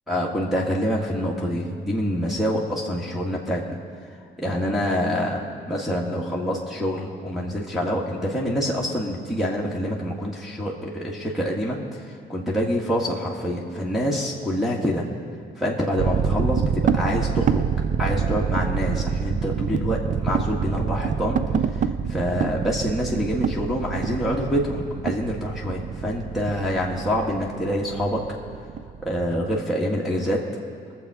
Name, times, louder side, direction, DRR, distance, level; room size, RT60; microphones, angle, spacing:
voice 1, 0.1-3.8 4.4-15.0 15.6-17.6 18.0-21.4 21.7-28.2 29.0-30.4, equal, ahead, -5 dB, 1.6 m, -26 dB
sound 1, 16.0-29.6, right 7 dB, 40° right, 0.5 m, -26 dB
20.0 x 7.4 x 4.8 m, 2.3 s
cardioid pair, 90°, 20 cm